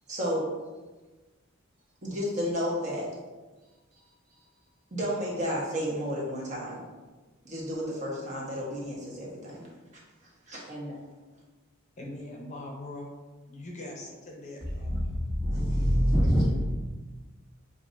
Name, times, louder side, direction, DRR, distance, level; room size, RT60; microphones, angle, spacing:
voice 1, 0.1-0.5 2.0-3.1 4.9-6.8 7.4-9.7 10.5-11.0, equal, 35° right, -5 dB, 1.2 m, -32 dB
voice 2, 12.0-13.1 13.5-15.1 16.2-16.7, left 1 dB, 35° left, -1 dB, 0.7 m, -42 dB
voice 3, 14.9-16.5, equal, 5° right, -7 dB, 0.5 m, -24 dB
7.0 x 2.6 x 2.6 m, 1.2 s
head